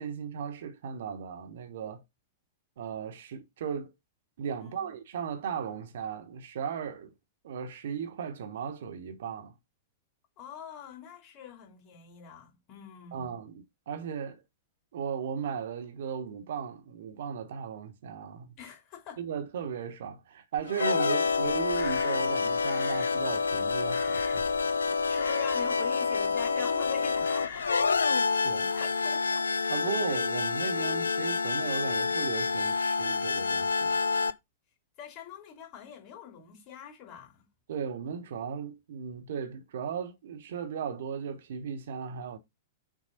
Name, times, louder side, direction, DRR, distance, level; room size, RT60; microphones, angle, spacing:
voice 1, 0.0-2.0 2.8-3.9 4.4-7.1 7.4-9.5 13.1-14.4 14.9-18.6 19.2-24.5 28.0-28.1 28.3-28.8 29.7-34.0 37.7-42.4, right 7 dB, 55° right, 1.0 m, -36 dB
voice 2, 10.4-13.3 18.6-19.2 25.1-27.7 28.7-29.5 35.0-37.4, left 8 dB, 35° left, 3.1 m, -44 dB
sound 1, 20.6-34.3, left 4 dB, 75° left, 0.5 m, -28 dB
Crow, 21.2-28.1, left 7 dB, 55° left, 2.3 m, -46 dB
6.4 x 3.4 x 5.4 m
figure-of-eight pair, 100°, 0 cm